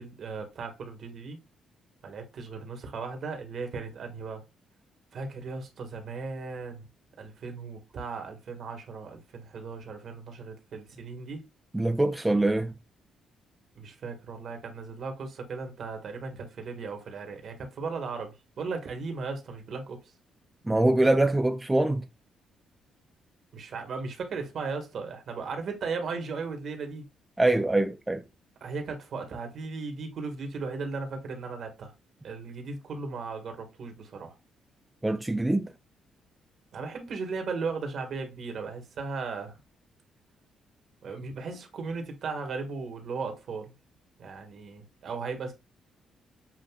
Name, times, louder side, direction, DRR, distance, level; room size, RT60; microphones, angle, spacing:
voice 1, 0.0-1.4 2.0-4.4 5.1-6.9 7.2-11.4 13.7-20.0 23.5-27.0 28.6-31.9 32.2-34.3 36.7-39.6 41.0-43.7 44.2-45.5, right 4 dB, 60° right, 1.5 m, -36 dB
voice 2, 11.7-12.7 20.6-22.1 27.4-28.2 35.0-35.7, right 2 dB, 10° right, 0.4 m, -24 dB
7.6 x 2.6 x 2.3 m
cardioid pair, 90°, 0 cm